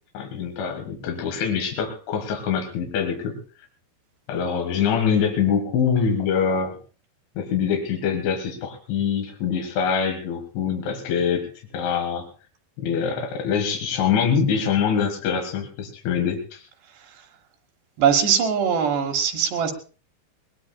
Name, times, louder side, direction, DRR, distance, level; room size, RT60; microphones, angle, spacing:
voice 1, 0.1-3.4 4.3-6.8 7.4-12.3 12.8-16.6, left 7 dB, 90° left, 2 dB, 4.1 m, -24 dB
voice 2, 18.0-19.7, right 7 dB, 70° right, 2 dB, 3.4 m, -21 dB
21.5 x 20.0 x 2.3 m, 0.37 s
omnidirectional pair, 5.2 m